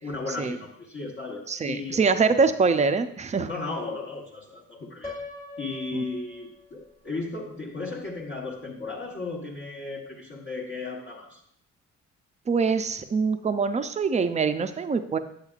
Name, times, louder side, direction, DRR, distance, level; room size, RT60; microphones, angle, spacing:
voice 1, 0.0-2.0 3.5-5.2 5.6-11.4, left 3 dB, 40° left, -4 dB, 1.1 m, -35 dB
voice 2, 1.5-3.5 5.9-6.0 12.5-15.2, right 5 dB, 25° right, 9 dB, 0.4 m, -24 dB
Piano, 5.0-7.0, left 3 dB, 20° left, 1.4 m, -41 dB
8.2 x 7.9 x 2.4 m, 0.69 s
cardioid pair, 125°, 29 cm